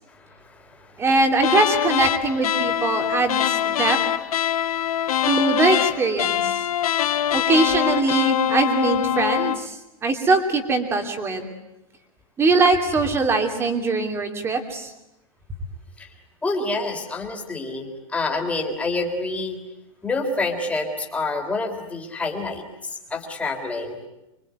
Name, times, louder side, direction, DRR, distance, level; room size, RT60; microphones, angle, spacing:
voice 1, 1.0-4.0 5.2-6.6 7.3-9.8 10.0-11.5 12.4-14.9, right 3 dB, 15° right, 5 dB, 2.8 m, -21 dB
sound 1, 1.4-9.7, left 10 dB, 90° left, 1.1 m, -23 dB
voice 2, 16.4-19.6 20.0-22.6 23.1-24.0, left 3 dB, 5° left, 2 dB, 3.5 m, -27 dB
26.0 x 23.5 x 9.5 m, 0.91 s
supercardioid pair, 160°, 18 cm